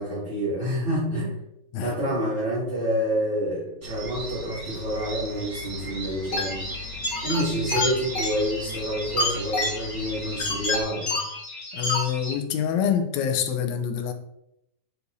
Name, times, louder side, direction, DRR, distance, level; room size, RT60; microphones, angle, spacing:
voice 1, 0.0-1.3 1.7-6.7 7.2-11.1, equal, 20° right, -12 dB, 1.7 m, -28 dB
sound 1, 3.8-10.8, equal, 60° right, 0.9 m, -38 dB
sound 2, 6.3-12.3, left 2 dB, 45° left, 1.7 m, -29 dB
voice 2, 11.7-14.1, left 8 dB, 80° left, 5 dB, 1.6 m, -26 dB
8.2 x 4.6 x 2.7 m, 0.79 s
omnidirectional pair, 3.9 m